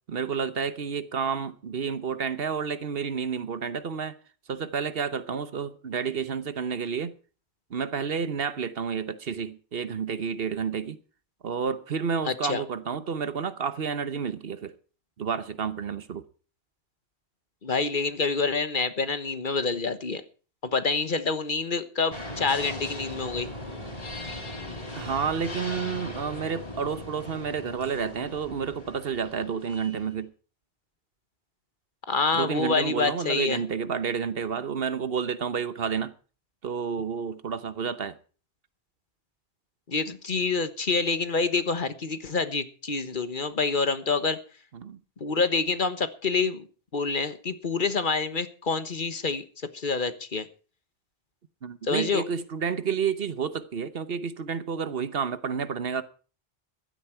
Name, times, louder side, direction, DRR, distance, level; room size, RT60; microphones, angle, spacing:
voice 1, 0.1-4.2 4.5-7.1 7.7-11.0 11.4-14.7 15.2-16.3 24.9-30.3 32.3-36.1 36.6-38.2 44.7-45.0 51.6-56.0, right 6 dB, 65° right, 1.2 m, -30 dB
voice 2, 12.3-12.6 17.6-20.2 20.7-23.5 32.1-33.6 39.9-44.4 45.2-46.6 46.9-49.4 49.7-50.5 51.9-52.2, left 4 dB, 55° left, 1.4 m, -27 dB
sound 1, 22.1-30.1, left 1 dB, 35° left, 5.0 m, -39 dB
15.5 x 12.5 x 4.5 m
omnidirectional pair, 1.1 m